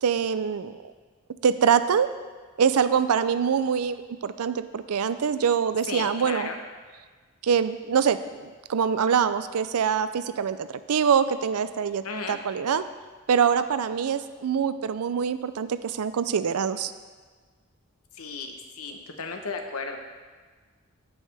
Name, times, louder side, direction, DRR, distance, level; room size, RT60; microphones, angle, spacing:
voice 1, 0.0-0.8 1.4-2.1 2.6-6.5 7.4-12.0 12.3-12.8 13.3-16.9, right 7 dB, 90° right, 13 dB, 0.4 m, -24 dB
voice 2, 5.9-6.6 12.0-12.4 18.1-20.0, left 4 dB, 80° left, 4 dB, 1.0 m, -34 dB
15.5 x 5.4 x 3.4 m, 1.4 s
head